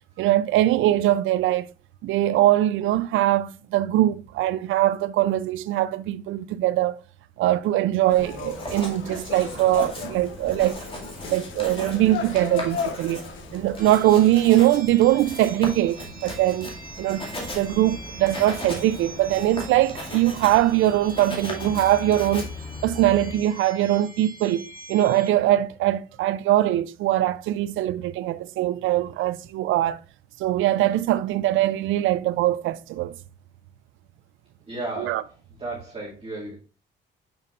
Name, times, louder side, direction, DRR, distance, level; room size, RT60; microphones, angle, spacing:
voice 1, 0.2-1.7 2.0-7.0 7.4-10.8 11.2-13.2 13.5-17.3 17.5-22.5 22.8-24.6 24.9-30.0 30.4-33.1 35.0-35.2, right 14 dB, 85° right, 0.5 m, -22 dB
Writing, 8.0-23.4, left 1 dB, 25° left, 2.2 m, -37 dB
sound 1, 8.1-14.7, left 6 dB, 75° left, 1.0 m, -36 dB
sound 2, 13.8-25.3, right 1 dB, 45° right, 1.8 m, -44 dB
voice 2, 34.7-36.5, right 2 dB, 30° right, 2.3 m, -34 dB
7.0 x 5.5 x 2.5 m
cardioid pair, 90°, 20 cm